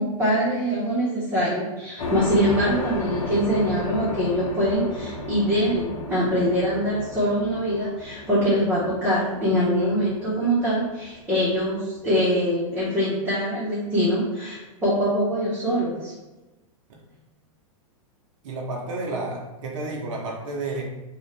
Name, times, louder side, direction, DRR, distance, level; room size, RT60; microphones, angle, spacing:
voice 1, 0.0-16.1, equal, 15° right, -10 dB, 1.0 m, -23 dB
sound 1, 2.0-12.1, left 2 dB, 80° left, 0.6 m, -34 dB
voice 2, 18.4-20.8, right 2 dB, 65° right, -1 dB, 0.7 m, -31 dB
2.6 x 2.3 x 3.2 m, 1.1 s
hypercardioid pair, 115°, 18 cm